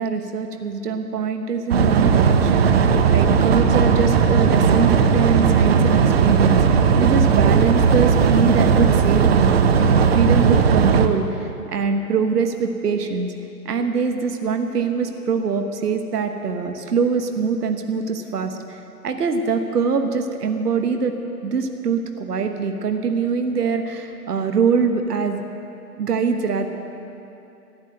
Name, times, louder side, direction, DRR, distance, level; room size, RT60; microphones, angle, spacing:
voice 1, 0.0-9.5 9.9-13.3 13.6-21.2 21.4-25.4 26.0-26.7, right 5 dB, 70° right, 6 dB, 1.2 m, -23 dB
sound 1, 1.7-11.1, right 6 dB, 40° right, 0.8 m, -16 dB
14.0 x 9.9 x 7.8 m, 2.8 s
figure-of-eight pair, 135°, 48 cm